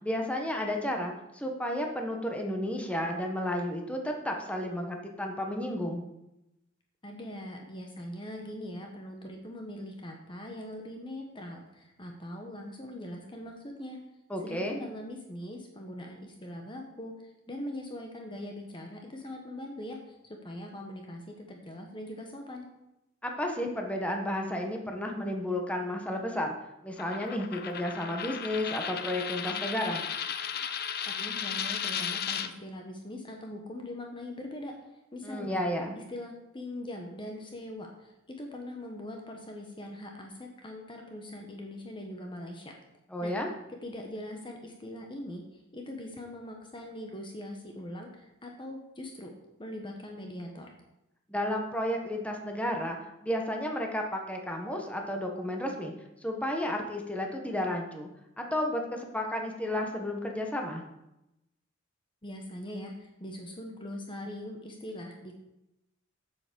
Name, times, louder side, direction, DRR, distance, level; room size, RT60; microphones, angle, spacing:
voice 1, 0.0-6.0 14.3-14.8 23.2-26.5 26.8-30.0 35.2-36.0 43.1-43.5 51.3-55.9 56.2-58.1 58.4-60.8, left 1 dB, 5° left, 2 dB, 1.3 m, -32 dB
voice 2, 7.0-14.0 14.4-22.7 31.1-34.7 35.1-35.6 36.0-42.7 43.2-43.3 43.8-49.3 49.6-50.7 62.2-65.4, left 1 dB, 25° left, 2 dB, 1.2 m, -41 dB
Coin (dropping), 27.0-32.5, left 8 dB, 50° left, 0.7 m, -35 dB
8.0 x 7.1 x 6.9 m, 0.89 s
head